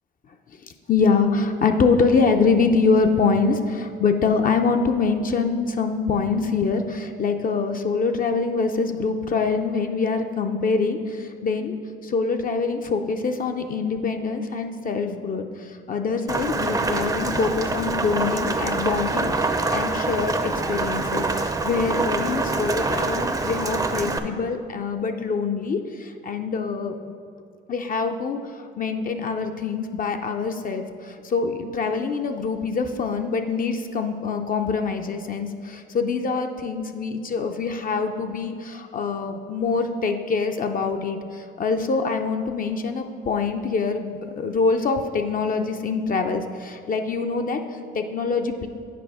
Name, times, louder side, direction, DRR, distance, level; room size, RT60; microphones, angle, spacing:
voice 1, 0.5-11.8 12.0-27.0 27.7-48.7, left 4 dB, 45° left, 5 dB, 0.5 m, -24 dB
Rain, 16.3-24.2, right 3 dB, 20° right, 0.5 m, -25 dB
8.5 x 5.0 x 4.8 m, 2.4 s
cardioid pair, 90°, 20 cm